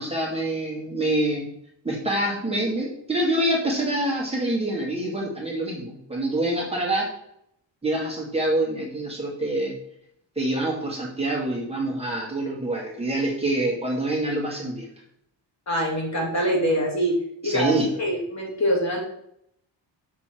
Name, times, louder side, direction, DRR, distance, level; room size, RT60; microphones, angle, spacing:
voice 1, 0.0-1.5 1.8-7.1 7.8-9.8 10.4-14.9 17.4-17.9, right 1 dB, 15° right, -3 dB, 2.2 m, -26 dB
voice 2, 15.7-17.2 17.4-17.7 18.0-19.0, equal, 35° left, -2 dB, 2.7 m, -24 dB
7.4 x 6.3 x 4.5 m, 0.74 s
wide cardioid pair, 150°, 44 cm